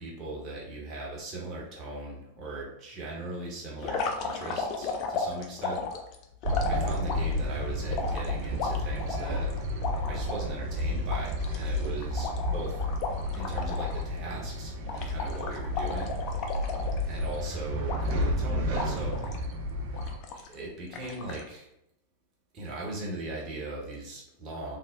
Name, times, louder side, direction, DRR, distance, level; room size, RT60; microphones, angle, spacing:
voice 1, 0.0-5.8 6.6-9.5 10.1-12.8 13.3-16.1 17.1-19.5 20.3-21.7 22.5-24.8, right 2 dB, 35° right, -4 dB, 0.9 m, -39 dB
sound 1, 3.8-7.4 7.9-10.4 10.8-10.9 11.1-14.0 14.3-14.5 14.9-17.4 17.9-18.4 18.7-19.4 19.9-20.5 20.9-21.4, left 4 dB, 40° left, 0.3 m, -34 dB
sound 2, 6.4-20.2, left 1 dB, 50° right, 0.4 m, -31 dB
2.9 x 2.0 x 2.4 m, 0.80 s
figure-of-eight pair, 90°, 0 cm